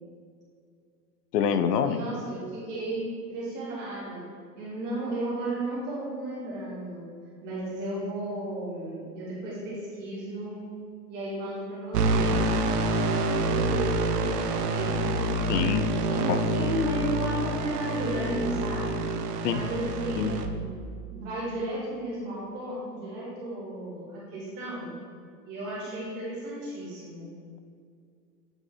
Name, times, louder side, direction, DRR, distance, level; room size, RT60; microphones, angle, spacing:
voice 1, 1.3-2.0 15.5-15.9 16.3-16.4 19.4-19.6 20.2-20.4, left 7 dB, 70° left, 10 dB, 0.6 m, -26 dB
voice 2, 1.8-4.2 4.5-7.1 7.4-10.6 11.1-15.5 16.0-19.0 19.5-20.8 21.1-24.9 25.4-27.3, right 1 dB, 20° right, -7 dB, 1.7 m, -34 dB
sound 1, 11.9-20.5, right 2 dB, 70° right, 0.7 m, -27 dB
8.0 x 4.1 x 3.7 m, 2.2 s
hypercardioid pair, 170°, 50 cm